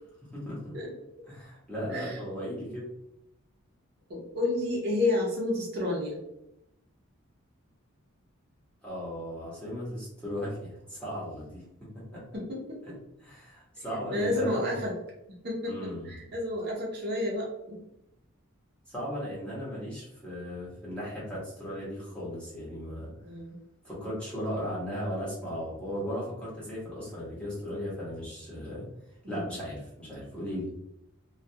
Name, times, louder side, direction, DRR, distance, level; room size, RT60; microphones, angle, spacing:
voice 1, 0.3-0.7 1.3-2.9 8.8-12.2 13.2-14.8 15.7-16.2 18.9-23.1 23.8-28.9 29.3-30.7, equal, 5° left, -8 dB, 0.9 m, -36 dB
voice 2, 4.1-6.2 12.3-12.8 14.1-14.9 15.4-17.8 23.2-23.6 29.2-29.4, left 2 dB, 50° right, -2 dB, 0.6 m, -30 dB
2.3 x 2.2 x 2.6 m, 0.84 s
head